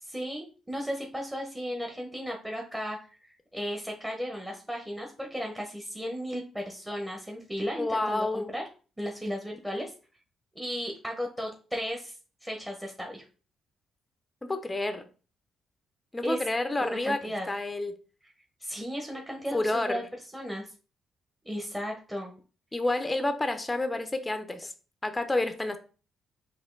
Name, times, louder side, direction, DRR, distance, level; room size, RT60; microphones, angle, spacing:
voice 1, 0.0-3.2 3.5-8.6 9.0-9.9 10.5-12.2 12.4-13.2 16.2-16.4 16.8-17.5 18.2-18.3 18.6-20.0 20.3-20.7 21.4-22.3, equal, 10° right, 1 dB, 1.0 m, -35 dB
voice 2, 7.8-8.5 14.4-15.1 16.1-17.2 17.5-17.9 19.5-20.1 22.7-24.7 25.0-25.8, left 2 dB, 15° left, 8 dB, 0.6 m, -29 dB
4.3 x 2.6 x 3.8 m, 0.36 s
cardioid pair, 90°, 0 cm